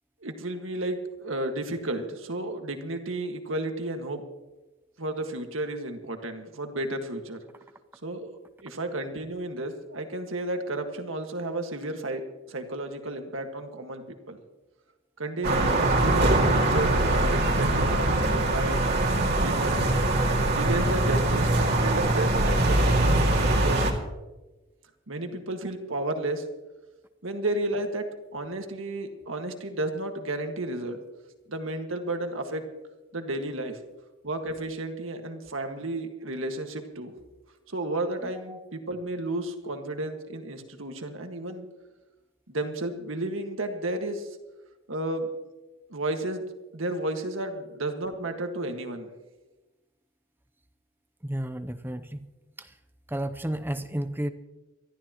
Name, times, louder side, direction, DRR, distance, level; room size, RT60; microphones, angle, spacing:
voice 1, 0.2-4.2 5.0-7.4 8.0-12.2 12.5-14.4 15.2-19.9 20.5-24.0 25.1-26.4 27.2-28.1 28.3-31.0 31.5-32.6 33.1-33.8 34.2-37.1 37.7-41.7 42.5-44.4 44.9-45.3 45.9-46.4 46.7-49.1, right 2 dB, 70° right, 5 dB, 1.7 m, -32 dB
sound 1, 15.4-23.9, right 2 dB, 55° right, 2.3 m, -23 dB
voice 2, 51.2-52.2 52.6-52.7 53.1-54.3, right 1 dB, 10° right, 11 dB, 0.7 m, -32 dB
26.0 x 12.5 x 3.0 m, 1.1 s
head